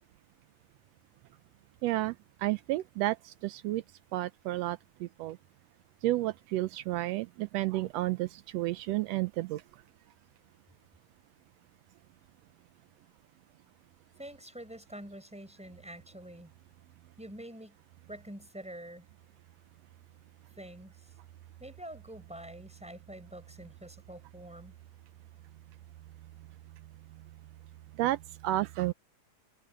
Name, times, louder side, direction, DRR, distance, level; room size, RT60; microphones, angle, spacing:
voice 1, 1.8-3.8 4.1-5.4 6.0-9.6 28.0-28.9, right 16 dB, 85° right, 1.4 m, -31 dB
voice 2, 14.2-16.5 17.2-17.8 18.1-19.0 20.6-21.1 21.6-24.8, right 1 dB, ahead, 5.4 m, -46 dB
omnidirectional pair, 3.6 m